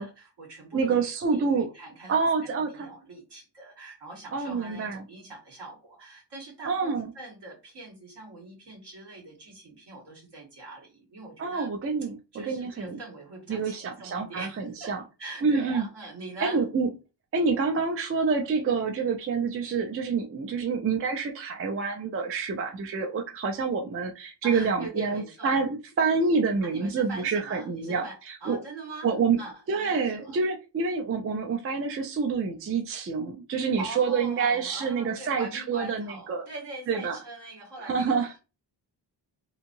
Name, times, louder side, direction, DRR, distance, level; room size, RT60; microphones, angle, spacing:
voice 1, 0.0-11.7 12.3-14.9 15.2-16.6 18.6-18.8 24.4-25.6 26.6-30.3 33.8-38.5, right 2 dB, 70° right, -1 dB, 1.5 m, -43 dB
voice 2, 0.7-1.7 2.1-2.9 4.3-5.0 6.6-7.1 11.4-13.0 13.5-15.0 15.4-15.9 16.4-16.9 17.3-25.7 26.0-28.6 29.0-29.4 29.7-36.4 36.9-37.2 37.8-38.3, right 5 dB, 35° right, 4 dB, 0.4 m, -27 dB
2.8 x 2.6 x 2.6 m, 0.29 s
wide cardioid pair, 160°, 42 cm